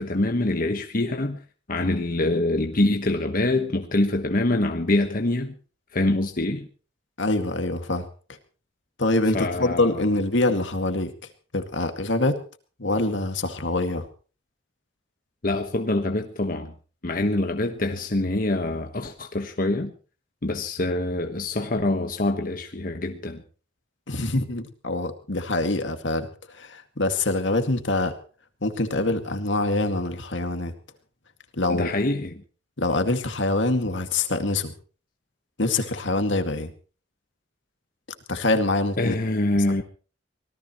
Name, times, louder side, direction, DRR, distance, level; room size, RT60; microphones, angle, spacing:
voice 1, 0.0-1.4 1.7-5.5 5.9-6.7 9.3-10.0 15.4-16.7 17.0-19.9 20.4-23.4 31.7-32.3 39.0-39.8, left 2 dB, 50° left, 1.3 m, -25 dB
voice 2, 7.2-8.1 9.0-11.1 11.5-12.4 12.8-14.1 24.1-26.3 26.6-28.2 28.6-30.7 31.6-31.9 32.8-34.7 35.6-36.7 38.3-39.2 39.5-39.8, left 2 dB, 75° left, 2.2 m, -25 dB
25.0 x 18.0 x 3.1 m
head